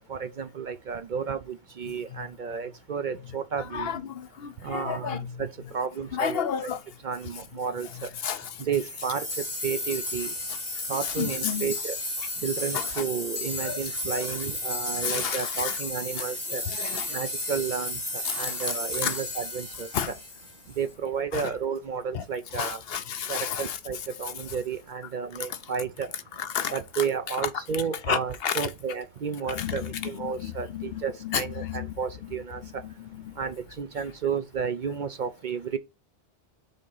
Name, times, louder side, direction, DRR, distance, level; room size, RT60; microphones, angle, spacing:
voice 1, 0.1-3.9 4.6-5.5 5.7-6.7 7.0-7.9 8.6-9.3 9.6-10.3 10.9-12.0 12.4-16.6 17.1-20.1 20.8-22.8 23.3-26.1 26.7-32.8 33.4-35.8, right 6 dB, 55° right, 0.6 m, -32 dB
voice 2, 3.5-5.4 6.1-6.8 7.9-8.6 10.5-11.7 12.7-13.0 13.6-14.4 15.0-15.8 16.2-16.3 16.6-17.2 18.2-19.2 19.9-20.1 21.3-21.5 22.1-22.2 22.5-23.8 25.4-25.7 26.3-28.7 29.5-31.9 32.2-32.3 32.8-33.3, left 8 dB, 65° left, 0.8 m, -32 dB
sound 1, 8.8-20.8, left 2 dB, 20° left, 1.6 m, -33 dB
5.3 x 3.7 x 5.5 m
omnidirectional pair, 1.1 m